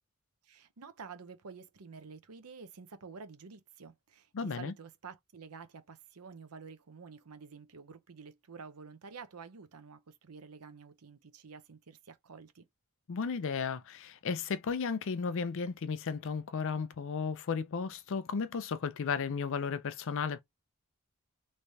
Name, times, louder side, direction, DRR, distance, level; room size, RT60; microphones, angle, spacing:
voice 1, 0.4-12.7, right 5 dB, 75° right, 0.7 m, -50 dB
voice 2, 4.3-4.7 13.1-20.4, left 5 dB, 60° left, 0.5 m, -34 dB
3.3 x 3.2 x 2.7 m
head